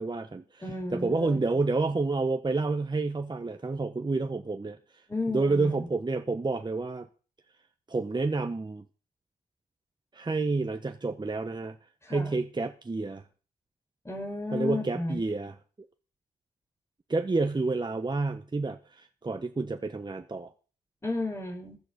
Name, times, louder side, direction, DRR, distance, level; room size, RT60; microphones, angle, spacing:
voice 1, 0.0-0.6 0.9-4.8 5.3-7.1 7.9-8.8 10.1-11.8 12.1-13.2 14.5-15.5 17.1-20.5, right 3 dB, 25° right, 6 dB, 1.2 m, -29 dB
voice 2, 0.6-1.4 5.1-5.9 12.0-12.3 14.0-15.2 21.0-21.8, left 2 dB, 15° left, 1 dB, 4.7 m, -33 dB
15.0 x 11.0 x 5.3 m, 0.39 s
supercardioid pair, 55°, 17 cm